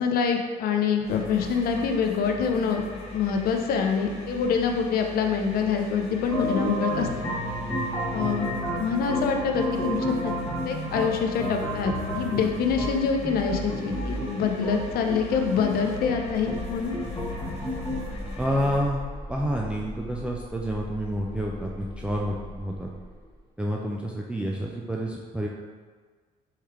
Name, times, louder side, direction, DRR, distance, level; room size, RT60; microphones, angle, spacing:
voice 1, 0.0-2.8 3.1-7.1 8.1-10.3 10.6-17.0, left 6 dB, 65° left, 4 dB, 0.6 m, -26 dB
sound 1, 1.0-18.9, left 2 dB, 35° left, 1.2 m, -40 dB
sound 2, 6.3-18.0, equal, 15° left, 1.2 m, -31 dB
sound 3, 16.2-23.4, left 1 dB, 20° right, 1.2 m, -40 dB
voice 2, 18.4-19.0 19.3-22.9 23.6-25.5, equal, 5° right, -2 dB, 0.3 m, -29 dB
4.5 x 3.2 x 3.6 m, 1.6 s
cardioid pair, 110°, 17 cm